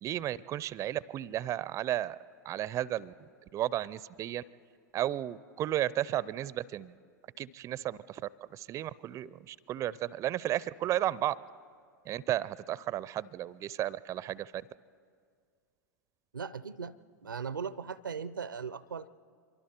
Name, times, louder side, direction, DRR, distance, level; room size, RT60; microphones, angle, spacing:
voice 1, 0.0-2.2 2.4-3.1 3.5-4.4 4.9-6.9 7.4-8.2 8.5-11.4 12.1-14.6, right 13 dB, 30° right, 21 dB, 0.4 m, -33 dB
voice 2, 16.3-17.0 17.2-19.1, right 6 dB, 85° right, 18 dB, 0.5 m, -38 dB
25.0 x 23.5 x 4.4 m, 2.1 s
figure-of-eight pair, 95°, 10 cm